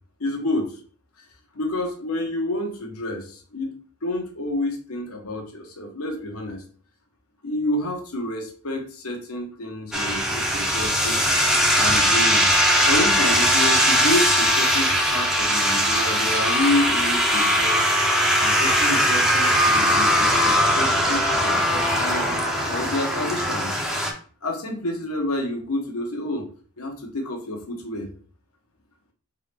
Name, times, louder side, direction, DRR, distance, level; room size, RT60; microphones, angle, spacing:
voice 1, 0.2-0.8 1.5-6.6 7.4-11.3 11.8-12.5 12.9-22.2 22.7-23.7 24.4-26.5 26.8-28.1, left 1 dB, 85° left, 3 dB, 1.1 m, -29 dB
sound 1, 9.9-24.1, equal, ahead, 0.6 m, -20 dB
4.2 x 3.6 x 3.3 m, 0.41 s
head